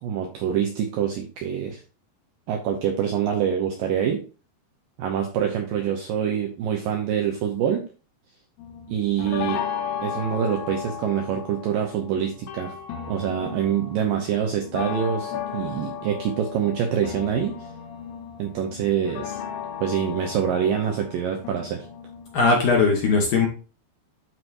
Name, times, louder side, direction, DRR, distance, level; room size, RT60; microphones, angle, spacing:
voice 1, 0.0-1.8 2.5-4.2 5.0-7.8 8.9-9.6 10.0-12.7 13.1-17.5 18.4-19.4 19.8-21.9, right 8 dB, 85° right, 3 dB, 1.9 m, -25 dB
sound 1, 8.6-22.7, left 8 dB, 90° left, 3.4 m, -35 dB
voice 2, 22.3-23.5, left 4 dB, 65° left, 1 dB, 2.0 m, -19 dB
12.0 x 4.6 x 2.6 m, 0.35 s
omnidirectional pair, 5.1 m